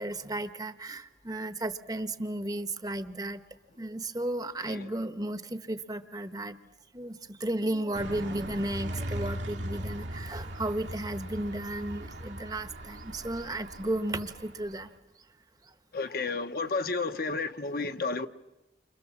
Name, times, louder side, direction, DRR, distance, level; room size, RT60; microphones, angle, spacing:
voice 1, 0.0-3.4 3.8-6.6 6.9-14.9, right 1 dB, 20° right, 0.9 m, -34 dB
sound 1, 7.9-14.9, right 1 dB, 80° right, 1.9 m, -39 dB
voice 2, 15.9-18.3, left 3 dB, 50° left, 0.9 m, -31 dB
30.0 x 25.5 x 7.3 m
head